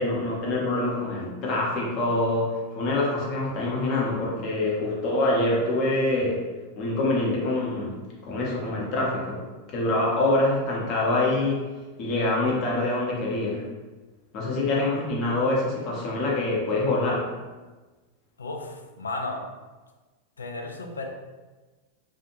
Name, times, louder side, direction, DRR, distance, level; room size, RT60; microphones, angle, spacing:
voice 1, 0.0-6.4 6.8-9.4 9.7-11.6 12.0-13.7 14.3-17.3, left 2 dB, 40° left, -4 dB, 0.7 m, -25 dB
voice 2, 18.4-19.4 20.4-21.1, left 2 dB, 75° left, 3 dB, 0.3 m, -34 dB
2.4 x 2.1 x 2.9 m, 1.3 s
figure-of-eight pair, 90°, 0 cm